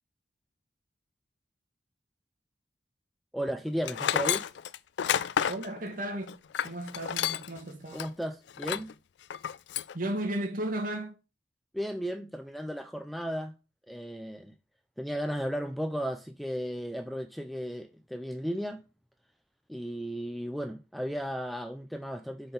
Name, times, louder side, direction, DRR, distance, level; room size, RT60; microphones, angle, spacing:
voice 1, 3.3-4.4 7.9-8.9 11.7-13.5 13.9-14.5 15.0-18.8 19.7-22.5, equal, ahead, 0.4 m, -35 dB
Tools, 3.8-7.6 7.9-8.1 8.6-8.9 9.3-9.9, left 9 dB, 75° left, 0.4 m, -30 dB
voice 2, 5.5-8.1 9.9-11.1, right 1 dB, 50° right, 2.1 m, -35 dB
7.8 x 4.4 x 5.3 m
head